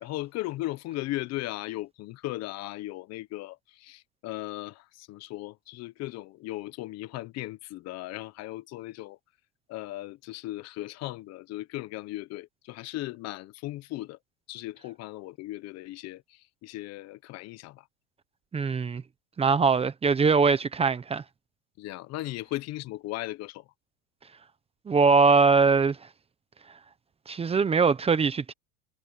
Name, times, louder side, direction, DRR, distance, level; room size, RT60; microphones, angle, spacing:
voice 1, 0.0-9.2 9.7-14.2 14.5-16.2 16.6-17.8 21.8-23.6, left 17 dB, 45° left, 1.2 m, -37 dB
voice 2, 18.5-19.0 19.4-21.2 24.9-26.0 27.3-28.5, right 4 dB, 15° right, 1.1 m, -22 dB
supercardioid pair, 130°, 37 cm